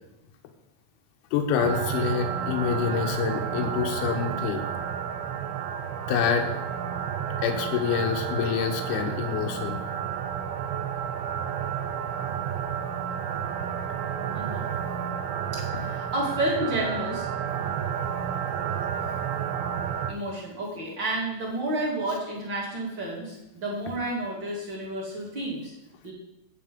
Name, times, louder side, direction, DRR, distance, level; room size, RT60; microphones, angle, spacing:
voice 1, 1.3-4.7 6.1-6.5 7.4-9.8, left 7 dB, 70° left, 5 dB, 2.2 m, -26 dB
sound 1, 1.6-20.1, right 8 dB, 75° right, 2.5 m, -31 dB
voice 2, 14.3-14.7 15.7-17.3 20.1-25.7 26.0-26.1, right 1 dB, 35° right, -4 dB, 2.5 m, -30 dB
9.2 x 7.6 x 5.2 m, 0.91 s
omnidirectional pair, 4.6 m